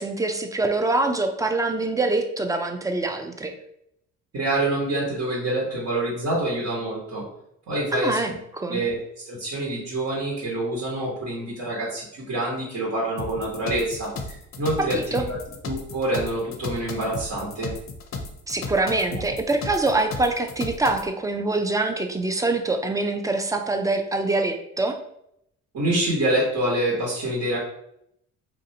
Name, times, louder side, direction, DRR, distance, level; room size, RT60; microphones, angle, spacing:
voice 1, 0.0-3.5 7.9-8.3 8.6-8.8 14.8-15.2 18.5-25.0, right 2 dB, 10° right, 5 dB, 0.4 m, -24 dB
voice 2, 4.3-7.2 7.7-8.3 8.7-9.0 9.3-15.4 15.7-17.7 25.7-27.6, right 1 dB, 65° right, -6 dB, 1.2 m, -26 dB
sound 1, 13.2-21.1, left 3 dB, 45° left, 0.5 m, -35 dB
3.2 x 2.6 x 2.7 m, 0.76 s
cardioid pair, 90°, 30 cm